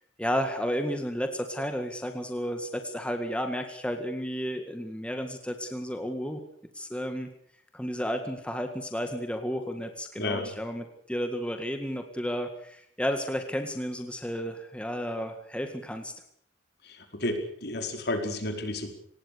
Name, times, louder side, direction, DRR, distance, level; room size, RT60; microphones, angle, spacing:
voice 1, 0.2-6.4 6.7-7.3 7.7-16.1, equal, 5° left, 5 dB, 1.9 m, -32 dB
voice 2, 10.2-10.5 16.8-18.9, left 1 dB, 55° left, 5 dB, 4.7 m, -31 dB
25.0 x 19.5 x 6.8 m, 0.67 s
head